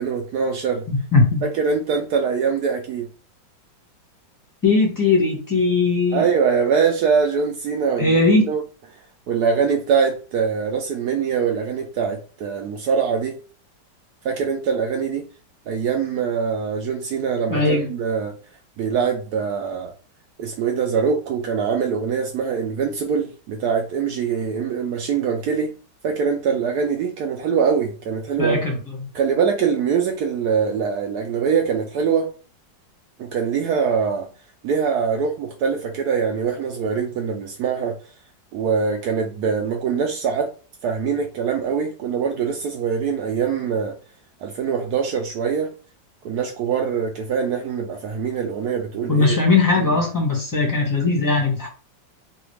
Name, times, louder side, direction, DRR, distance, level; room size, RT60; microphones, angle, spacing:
voice 1, 0.0-0.8 1.4-3.1 6.1-8.2 8.5-8.6 9.3-13.4 14.2-15.2 15.7-18.3 18.8-19.9 20.4-25.7 26.0-28.6 29.1-32.3 33.2-34.3 34.6-38.0 38.5-40.5 40.8-43.9 44.4-45.7 46.2-49.3, right 6 dB, 70° right, 1.0 m, -23 dB
voice 2, 0.9-1.4 4.6-6.3 8.0-8.5 17.5-17.8 28.4-28.8 49.1-51.7, left 3 dB, 15° left, 0.7 m, -19 dB
3.2 x 2.4 x 3.1 m
omnidirectional pair, 2.0 m